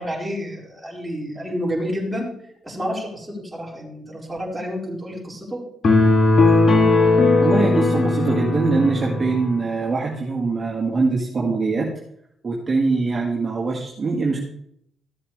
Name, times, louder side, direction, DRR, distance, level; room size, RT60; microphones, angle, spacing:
voice 1, 0.0-2.3 2.6-5.6, equal, 10° right, -4 dB, 4.6 m, -29 dB
sound 1, 5.8-9.4, left 2 dB, 45° left, 2.2 m, -17 dB
voice 2, 7.4-11.9 12.4-14.4, right 4 dB, 35° right, -3 dB, 2.0 m, -22 dB
15.0 x 7.5 x 3.3 m, 0.73 s
cardioid pair, 90°, 0 cm